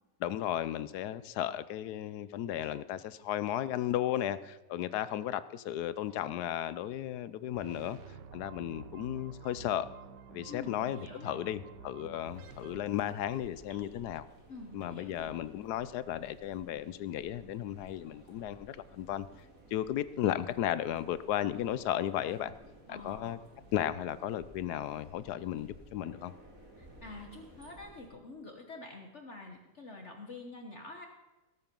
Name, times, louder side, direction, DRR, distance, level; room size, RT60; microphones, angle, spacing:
voice 1, 0.2-8.0 8.3-9.9 10.3-14.3 14.7-19.3 19.7-22.5 22.9-23.4 23.7-26.3, left 11 dB, 75° left, 15 dB, 1.1 m, -34 dB
sound 1, 7.5-13.7, right 5 dB, 90° right, 1.5 m, -50 dB
voice 2, 10.5-11.4 14.5-15.3 22.9-23.4 26.8-31.1, left 3 dB, 45° left, 3 dB, 1.3 m, -47 dB
sound 2, 12.3-28.1, right 1 dB, 50° right, 3.0 m, -56 dB
17.5 x 8.3 x 5.3 m, 1.1 s
omnidirectional pair, 1.8 m